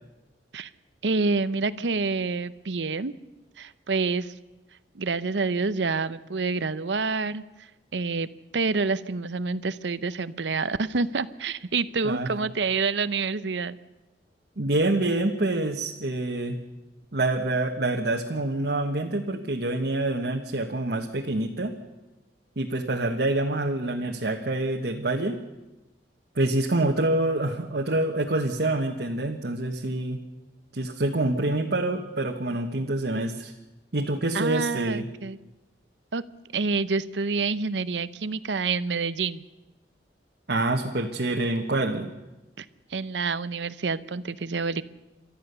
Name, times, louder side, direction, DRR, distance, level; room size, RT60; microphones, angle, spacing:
voice 1, 1.0-3.1 3.6-4.3 4.9-7.4 7.9-8.3 8.5-13.8 34.3-35.4 36.1-36.2 36.5-39.4 42.6-42.7 42.9-44.8, right 4 dB, 90° right, 15 dB, 0.7 m, -27 dB
voice 2, 14.6-16.6 17.1-21.7 22.6-25.4 26.3-30.2 30.7-33.5 33.9-35.0 40.5-42.1, right 2 dB, 65° right, 1 dB, 1.4 m, -26 dB
29.5 x 13.5 x 6.8 m, 1.0 s
head